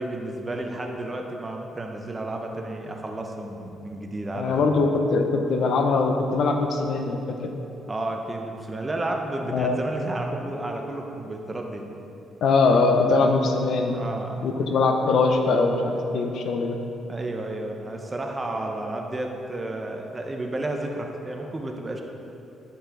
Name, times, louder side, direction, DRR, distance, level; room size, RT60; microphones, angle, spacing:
voice 1, 0.0-4.7 7.9-11.8 13.9-14.4 17.1-22.0, right 1 dB, 25° right, 2 dB, 0.9 m, -32 dB
voice 2, 4.3-7.4 9.5-9.8 12.4-14.0 14.4-16.8, left 3 dB, 70° left, 4 dB, 0.7 m, -22 dB
10.5 x 5.5 x 3.8 m, 2.9 s
cardioid pair, 90°, 0 cm